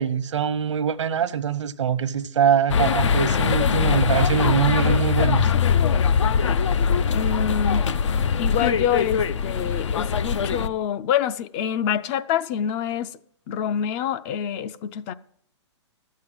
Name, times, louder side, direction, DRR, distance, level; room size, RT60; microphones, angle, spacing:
voice 1, 0.0-5.5, right 8 dB, 85° right, 0.9 m, -23 dB
sound 1, 2.7-10.7, left 6 dB, 75° left, 0.7 m, -21 dB
voice 2, 7.1-7.8 8.4-13.1 13.5-15.1, left 9 dB, 25° left, 0.4 m, -26 dB
12.0 x 7.4 x 7.7 m
hypercardioid pair, 145°, 15 cm